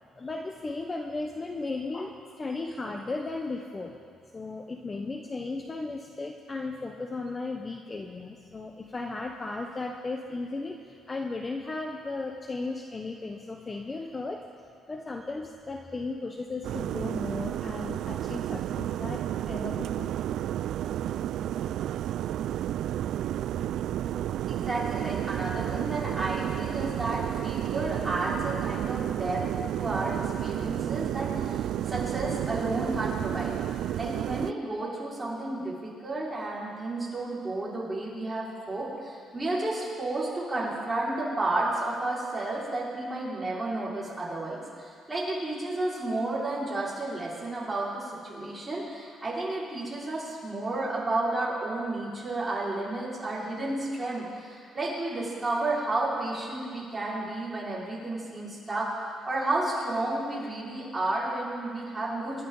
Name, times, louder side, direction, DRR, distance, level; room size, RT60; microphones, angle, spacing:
voice 1, 0.2-3.9 4.3-10.8 11.1-14.4 14.9-20.1, left 3 dB, 25° left, 3 dB, 1.0 m, -35 dB
sound 1, 16.6-34.5, right 11 dB, 75° right, 0.3 m, -31 dB
voice 2, 24.5-29.4 29.7-33.6 33.9-58.9 59.3-62.5, right 2 dB, 15° right, -7 dB, 5.3 m, -32 dB
28.0 x 11.5 x 4.0 m, 2.2 s
cardioid pair, 115°, 0 cm